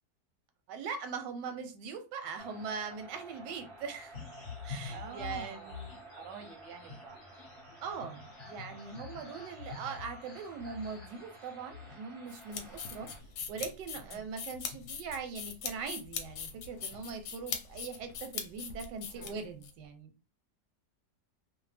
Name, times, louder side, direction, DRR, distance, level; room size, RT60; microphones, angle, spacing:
voice 1, 0.7-4.2 4.6-6.0 7.8-13.1 13.5-20.1, right 5 dB, 85° right, 1.2 m, -41 dB
sound 1, 2.4-13.2, right 2 dB, 35° right, 0.5 m, -52 dB
sound 2, 4.1-17.2 17.5-18.2, left 6 dB, 45° left, 1.0 m, -49 dB
voice 2, 4.8-7.4 14.0-14.3 19.1-19.5, right 6 dB, 60° right, 0.8 m, -49 dB
sound 3, 12.3-19.7, left 7 dB, 70° left, 1.0 m, -41 dB
2.7 x 2.1 x 3.2 m
omnidirectional pair, 1.8 m